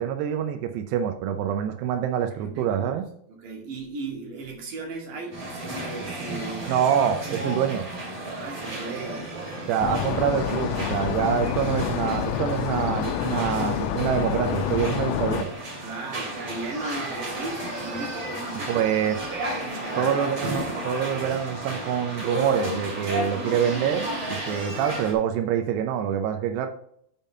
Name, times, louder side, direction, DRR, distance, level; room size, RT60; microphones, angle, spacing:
voice 1, 0.0-3.0 6.7-7.9 9.7-15.5 18.7-19.2 20.0-26.7, right 9 dB, 80° right, 6 dB, 2.5 m, -26 dB
voice 2, 2.4-3.0 3.3-7.6 8.4-9.4 15.8-18.8 19.6-20.2, right 3 dB, 55° right, 0 dB, 3.1 m, -37 dB
sound 1, 5.3-25.1, right 1 dB, 35° right, 3.1 m, -33 dB
sound 2, 9.8-15.4, left 11 dB, 85° left, 2.8 m, -28 dB
7.3 x 5.5 x 5.4 m, 0.67 s
omnidirectional pair, 5.4 m